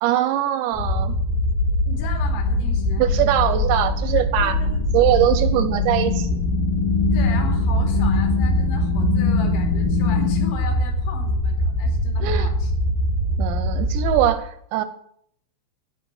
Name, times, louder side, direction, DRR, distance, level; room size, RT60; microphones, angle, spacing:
voice 1, 0.0-1.2 3.0-4.6 4.9-6.4 12.2-12.5 13.4-14.8, right 12 dB, 80° right, 12 dB, 2.7 m, -21 dB
sound 1, 0.7-14.3, left 1 dB, 85° left, 4.4 m, -23 dB
voice 2, 1.9-3.0 4.3-4.8 7.1-12.7, left 4 dB, 70° left, 3 dB, 4.9 m, -36 dB
sound 2, 2.0-10.5, left 6 dB, 50° left, 1.9 m, -26 dB
16.5 x 5.8 x 9.3 m, 0.69 s
omnidirectional pair, 5.6 m